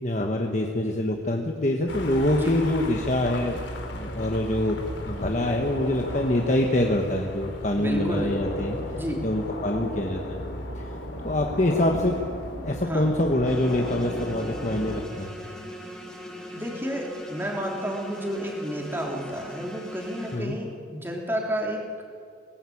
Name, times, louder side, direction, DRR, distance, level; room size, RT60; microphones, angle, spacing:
voice 1, 0.0-3.6 3.9-8.8 9.2-10.4 10.8-10.9 11.2-12.1 12.6-15.3 20.3-20.6, left 1 dB, 40° left, 2 dB, 1.4 m, -25 dB
sound 1, 1.9-15.0, left 1 dB, 80° left, 3.7 m, -35 dB
voice 2, 7.7-8.4 8.9-9.2 12.8-13.1 16.5-21.8, equal, 10° right, 0 dB, 3.3 m, -31 dB
sound 2, 13.4-20.4, equal, 5° left, 3.8 m, -40 dB
22.0 x 18.5 x 8.7 m, 2.3 s
head